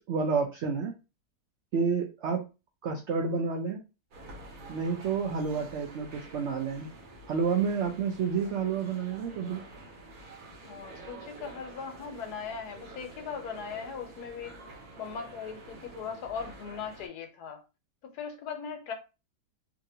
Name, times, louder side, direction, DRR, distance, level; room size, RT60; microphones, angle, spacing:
voice 1, 0.1-0.9 1.7-2.5 2.8-3.8 4.7-6.9 7.3-9.6, right 5 dB, 80° right, 0.6 m, -29 dB
sound 1, 4.1-17.1, right 2 dB, 60° right, 1.2 m, -48 dB
voice 2, 10.6-14.6 15.0-17.6 18.1-18.9, left 6 dB, 75° left, 1.2 m, -39 dB
2.8 x 2.6 x 2.7 m
omnidirectional pair, 1.7 m